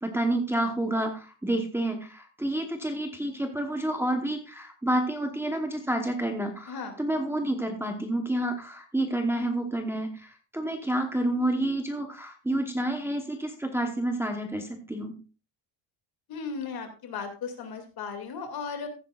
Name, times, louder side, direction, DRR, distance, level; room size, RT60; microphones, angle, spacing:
voice 1, 0.0-15.1, right 1 dB, 5° right, 3 dB, 1.0 m, -29 dB
voice 2, 6.7-7.0 16.3-18.9, left 5 dB, 55° left, 5 dB, 2.4 m, -36 dB
15.0 x 9.1 x 2.4 m, 0.32 s
cardioid pair, 165°, 45 cm